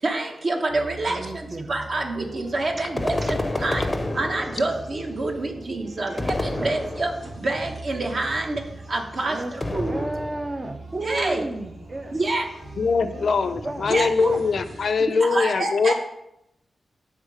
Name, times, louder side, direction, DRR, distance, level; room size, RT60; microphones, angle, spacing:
voice 1, 0.0-3.9 4.1-10.0 11.0-11.5 12.1-12.5 13.9-14.1 15.1-15.9, right 2 dB, 50° right, 2 dB, 1.1 m, -27 dB
sound 1, 0.7-15.0, right 2 dB, 70° right, 2.2 m, -43 dB
voice 2, 1.1-1.7 3.2-3.3 6.1-6.8 9.3-9.5 9.9-12.2 13.0-13.3 13.6-13.9 14.2-14.4, right 2 dB, 35° right, 7 dB, 0.5 m, -33 dB
sound 2, 2.2-14.9, right 1 dB, 90° right, 2.7 m, -46 dB
sound 3, 3.0-4.9 6.2-7.4 9.6-10.6, left 2 dB, 20° left, 0.6 m, -29 dB
voice 3, 12.8-15.9, left 4 dB, 70° left, 11 dB, 0.5 m, -22 dB
7.4 x 3.5 x 6.3 m, 0.83 s
wide cardioid pair, 105°, 0 cm